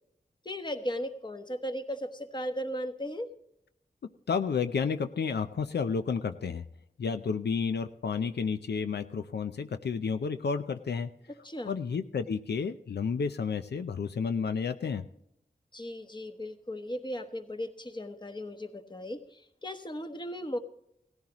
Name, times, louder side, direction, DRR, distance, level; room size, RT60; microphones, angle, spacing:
voice 1, 0.4-3.3 11.4-11.8 15.7-20.6, equal, 25° left, 7 dB, 1.2 m, -36 dB
voice 2, 4.3-6.6 7.0-11.1 11.7-15.0, left 5 dB, 85° left, 9 dB, 0.5 m, -31 dB
17.5 x 14.5 x 3.0 m, 0.79 s
wide cardioid pair, 70°, 17 cm